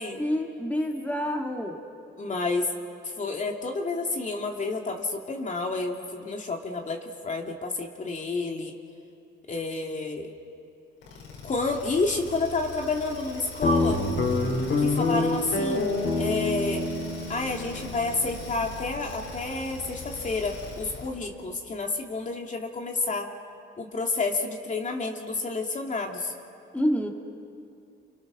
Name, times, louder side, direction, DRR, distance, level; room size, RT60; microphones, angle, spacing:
voice 1, 0.2-1.8 26.7-27.1, equal, 5° left, 1 dB, 2.9 m, -27 dB
voice 2, 2.2-2.7 3.0-8.8 9.5-10.3 11.4-14.0 14.8-16.9 17.3-23.3 23.8-26.3, left 3 dB, 40° left, 1 dB, 2.6 m, -30 dB
sound 1, 11.0-21.2, left 3 dB, 80° left, 6.2 m, -42 dB
Guitar, 13.6-20.3, left 3 dB, 65° left, 5.0 m, -28 dB
29.0 x 27.0 x 6.3 m, 2.5 s
cardioid pair, 90°, 20 cm